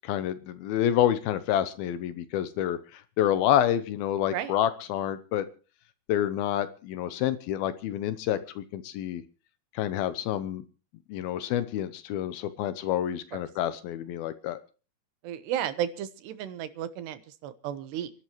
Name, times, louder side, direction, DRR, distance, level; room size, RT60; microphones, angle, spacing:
voice 1, 0.0-5.5 6.1-9.2 9.7-10.6 11.1-14.6, left 11 dB, 75° left, 13 dB, 2.5 m, -28 dB
voice 2, 15.2-18.1, right 10 dB, 85° right, 12 dB, 3.3 m, -33 dB
29.0 x 11.5 x 3.1 m, 0.35 s
omnidirectional pair, 4.7 m